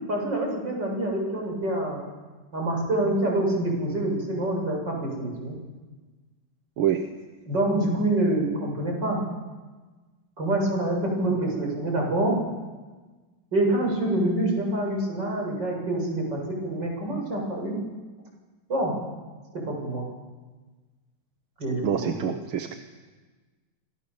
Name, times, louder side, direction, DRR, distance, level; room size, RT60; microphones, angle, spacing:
voice 1, 0.1-2.0 2.5-5.6 7.4-9.2 10.4-12.4 13.5-17.8 18.7-18.9 19.5-20.0 21.6-22.3, right 1 dB, 60° right, 1 dB, 8.3 m, -26 dB
voice 2, 21.8-22.7, right 9 dB, 85° right, 7 dB, 2.1 m, -26 dB
28.5 x 27.0 x 7.1 m, 1.3 s
omnidirectional pair, 2.2 m